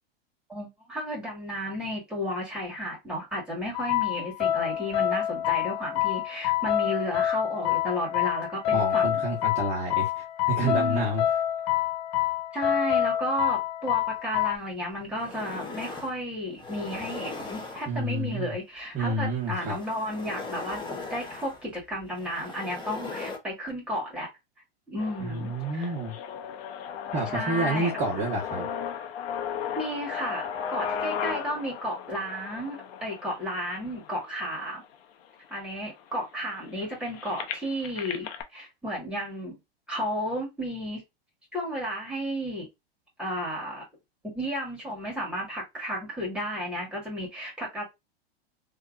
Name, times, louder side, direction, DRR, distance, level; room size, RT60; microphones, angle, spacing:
voice 1, 0.5-9.2 10.6-11.1 12.5-20.8 21.1-24.3 24.9-25.9 27.3-27.9 29.8-34.8 35.5-39.6 39.9-41.0 41.5-42.7 43.2-43.9 44.2-47.8, equal, 5° right, 1.9 m, -33 dB
sound 1, 3.7-14.6, left 11 dB, 40° left, 0.5 m, -27 dB
voice 2, 8.7-11.2 17.9-18.5 18.9-19.8 25.2-26.1 27.1-28.7, right 1 dB, 20° right, 1.1 m, -29 dB
sound 2, 14.5-14.6 15.0-16.2 16.5-18.2 19.3-23.4, left 3 dB, 15° left, 0.9 m, -39 dB
sound 3, 25.0-34.9 35.6-35.7 36.0-38.4, left 8 dB, 65° left, 0.8 m, -36 dB
3.3 x 2.8 x 2.5 m
hypercardioid pair, 125°, 31 cm